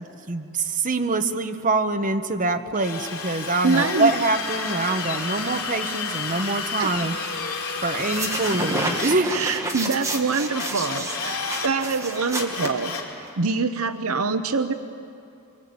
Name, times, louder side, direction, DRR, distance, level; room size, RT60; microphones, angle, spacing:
voice 1, 0.0-7.2 7.8-9.4, right 3 dB, 40° right, 6 dB, 1.2 m, -25 dB
Drill, 2.7-9.1 10.5-11.7 12.1-13.1, left 4 dB, 65° left, 4.3 m, -31 dB
voice 2, 3.6-4.1 6.8-6.9 7.9-8.0 9.3-13.0 13.4-14.7, right 4 dB, 70° right, 9 dB, 0.9 m, -25 dB
sound 1, 8.0-13.3, right 2 dB, 15° right, 2.1 m, -30 dB
25.0 x 24.0 x 8.8 m, 2.7 s
head